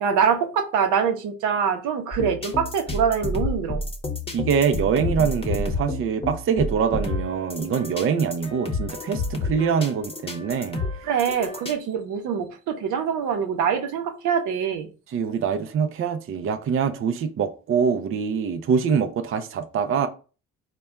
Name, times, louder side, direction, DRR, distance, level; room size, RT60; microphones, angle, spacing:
voice 1, 0.0-3.8 11.0-14.9, right 7 dB, 85° right, 0.7 m, -24 dB
sound 1, 2.1-11.7, left 2 dB, 20° left, 0.8 m, -30 dB
voice 2, 4.3-10.8 15.1-20.1, right 6 dB, 45° right, 0.5 m, -24 dB
4.0 x 2.2 x 3.5 m
cardioid pair, 90°, 30 cm